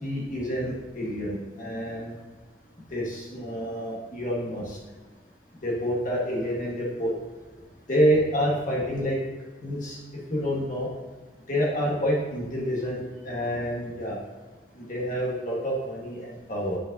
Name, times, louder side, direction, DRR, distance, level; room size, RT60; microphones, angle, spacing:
voice 1, 0.0-2.1 2.9-4.8 5.6-7.1 7.9-9.2 9.6-10.0 10.3-10.9 11.5-14.2 14.8-16.8, equal, 45° left, -3 dB, 1.4 m, -28 dB
10.0 x 5.2 x 2.6 m, 1.3 s
head